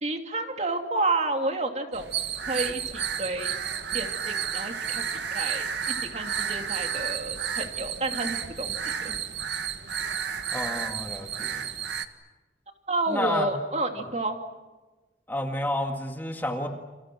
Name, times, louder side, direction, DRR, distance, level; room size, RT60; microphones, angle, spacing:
voice 1, 0.0-2.1 2.5-3.5 3.9-5.0 5.3-5.7 6.0-9.2 12.9-14.4, right 2 dB, 35° right, 4 dB, 2.9 m, -30 dB
sound 1, 1.9-12.1, right 8 dB, 75° right, 1.7 m, -31 dB
voice 2, 10.5-11.6 13.1-13.5 15.3-16.7, left 1 dB, 10° left, 3 dB, 2.1 m, -30 dB
30.0 x 29.0 x 6.2 m, 1.2 s
head